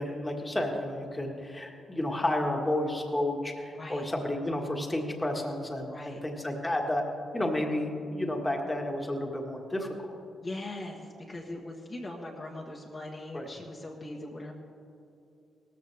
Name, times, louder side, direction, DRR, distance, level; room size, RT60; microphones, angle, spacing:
voice 1, 0.0-7.0 7.3-9.9 13.3-13.5, left 1 dB, 15° left, 1 dB, 1.7 m, -31 dB
voice 2, 3.7-4.1 5.8-6.2 10.4-14.5, left 2 dB, 30° left, -2 dB, 1.4 m, -40 dB
18.0 x 14.0 x 3.5 m, 2.7 s
cardioid pair, 110°, 0 cm